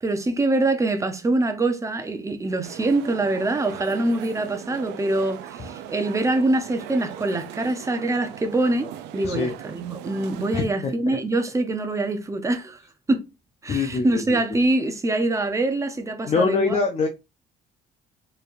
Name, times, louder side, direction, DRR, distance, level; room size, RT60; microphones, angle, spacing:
voice 1, 0.0-8.9 9.1-12.8 13.1-13.2 13.6-16.8, right 2 dB, 20° right, 0.8 m, -24 dB
sound 1, 2.6-10.6, right 9 dB, 90° right, 0.5 m, -39 dB
voice 2, 10.5-11.2 13.7-14.6 16.3-17.1, left 4 dB, 40° left, 0.7 m, -24 dB
4.5 x 3.3 x 2.6 m
cardioid pair, 110°, 17 cm